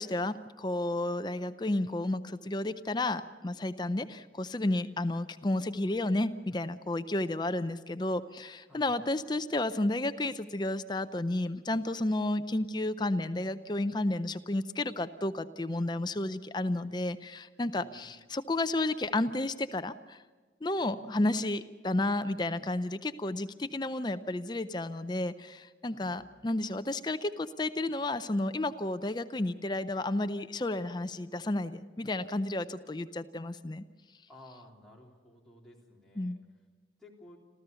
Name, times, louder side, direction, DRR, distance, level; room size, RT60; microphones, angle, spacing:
voice 1, 0.0-20.2 20.6-33.8 36.2-36.4, left 2 dB, 25° left, 11 dB, 0.5 m, -32 dB
voice 2, 3.8-4.1 8.7-8.9 17.7-18.1 20.8-21.1 25.9-26.3 34.3-36.4 37.0-37.4, left 1 dB, ahead, -4 dB, 3.5 m, -55 dB
27.0 x 14.5 x 6.9 m, 1.4 s
head